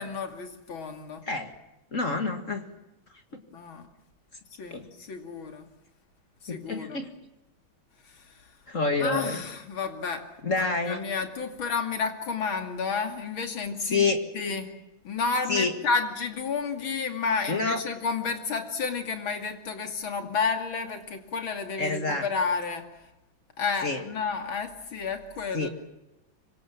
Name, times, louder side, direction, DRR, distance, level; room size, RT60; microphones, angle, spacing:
voice 1, 0.0-1.3 3.5-3.9 4.6-5.7 6.4-7.0 8.1-8.5 9.0-10.3 10.6-14.1 14.3-14.7 15.0-22.9 23.6-25.7, left 5 dB, 80° left, 6 dB, 3.4 m, -31 dB
voice 2, 1.9-2.6 4.7-4.8 6.5-7.1 8.7-9.4 10.4-11.0 13.9-14.2 15.5-15.7 17.5-17.8 21.8-22.3 23.8-24.0 25.5-25.7, left 3 dB, 40° left, 6 dB, 2.2 m, -27 dB
25.5 x 24.0 x 7.5 m, 0.95 s
omnidirectional pair, 2.2 m